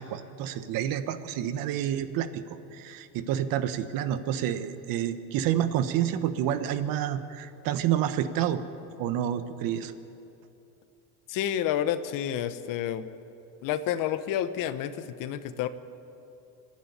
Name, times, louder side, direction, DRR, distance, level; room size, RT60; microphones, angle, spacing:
voice 1, 0.0-2.4 2.7-8.6 9.0-9.9, right 10 dB, 55° right, 11 dB, 1.3 m, -29 dB
voice 2, 11.3-13.0 13.6-15.7, left 10 dB, 50° left, 12 dB, 1.1 m, -29 dB
26.0 x 11.0 x 9.9 m, 2.7 s
cardioid pair, 140°, 42 cm